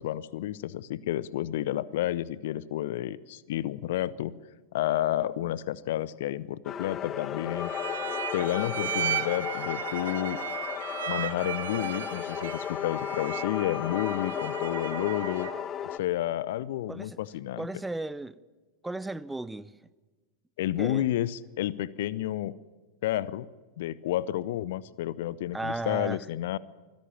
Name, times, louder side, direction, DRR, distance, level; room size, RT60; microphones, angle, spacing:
voice 1, 0.0-4.3 4.7-7.7 8.3-10.4 11.1-15.5 15.8-17.7 20.6-22.5 23.0-23.5 23.8-26.6, left 13 dB, 55° left, 0.7 m, -30 dB
sound 1, 6.6-16.0, left 9 dB, 25° left, 1.0 m, -34 dB
sound 2, 7.6-15.7, right 10 dB, 60° right, 1.1 m, -36 dB
voice 2, 17.6-18.4 18.8-19.8 20.8-21.0 25.5-26.2, right 2 dB, 5° right, 0.7 m, -34 dB
24.0 x 16.0 x 7.3 m
figure-of-eight pair, 90°, 0 cm